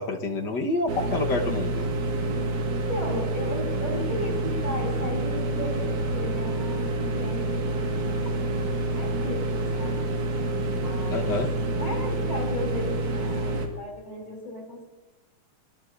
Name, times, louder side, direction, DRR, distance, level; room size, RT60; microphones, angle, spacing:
voice 1, 0.0-1.8 11.1-11.5, left 2 dB, 50° left, 2 dB, 1.5 m, -27 dB
sound 1, 0.9-13.7, right 2 dB, 80° right, 3.4 m, -28 dB
voice 2, 2.6-8.1 8.9-10.0 10.6-11.4 11.7-14.8, left 1 dB, 20° left, -1 dB, 5.6 m, -35 dB
24.0 x 20.5 x 2.7 m, 1.1 s
omnidirectional pair, 3.4 m